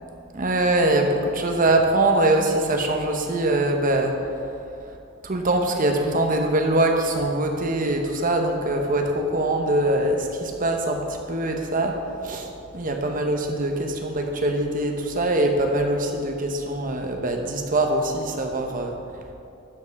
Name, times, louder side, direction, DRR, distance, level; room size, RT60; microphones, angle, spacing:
voice 1, 0.3-4.2 5.2-12.0 12.2-19.0, right 1 dB, 45° right, 3 dB, 1.0 m, -23 dB
12.0 x 5.5 x 4.8 m, 2.6 s
head